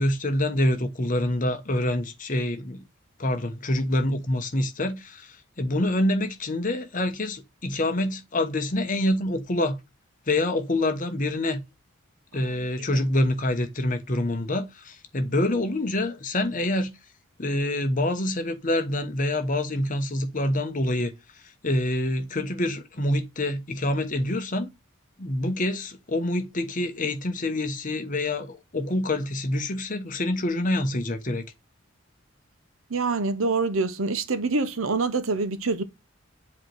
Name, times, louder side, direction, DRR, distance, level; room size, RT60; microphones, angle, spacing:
voice 1, 0.0-2.8 3.2-9.8 10.3-11.6 12.3-16.9 17.4-21.1 21.6-24.7 25.2-31.5, left 1 dB, 40° left, 1.0 m, -26 dB
voice 2, 32.9-35.8, right 3 dB, 85° right, 0.9 m, -25 dB
7.6 x 3.1 x 4.5 m
head